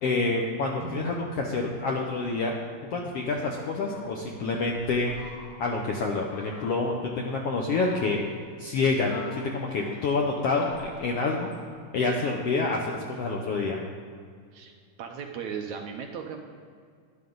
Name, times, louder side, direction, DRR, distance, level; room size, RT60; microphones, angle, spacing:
voice 1, 0.0-2.5 2.9-5.3 5.6-8.2 8.6-11.5 11.9-13.8, left 3 dB, 85° left, 0 dB, 1.3 m, -27 dB
sound 1, 0.7-4.0, right 8 dB, 55° right, 0.3 m, -44 dB
Fowl, 3.7-5.8 6.3-6.9 7.5-8.4 8.9-11.7, left 4 dB, 70° left, 2.8 m, -46 dB
voice 2, 14.5-16.4, right 7 dB, 75° right, 3 dB, 1.8 m, -37 dB
12.5 x 11.0 x 3.9 m, 2.1 s
omnidirectional pair, 4.0 m